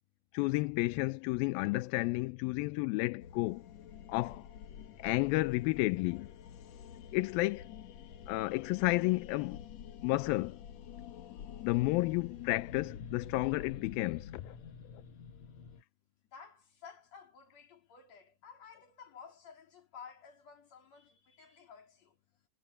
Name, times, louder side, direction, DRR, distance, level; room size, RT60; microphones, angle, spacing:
voice 1, 0.3-3.6 4.1-4.5 5.0-6.3 7.1-7.7 8.3-9.6 10.0-10.6 11.6-14.6, left 21 dB, 85° left, 2.1 m, -31 dB
sound 1, 3.2-15.8, left 9 dB, 60° left, 1.9 m, -48 dB
voice 2, 16.3-22.1, left 6 dB, 40° left, 4.5 m, -54 dB
omnidirectional pair, 4.7 m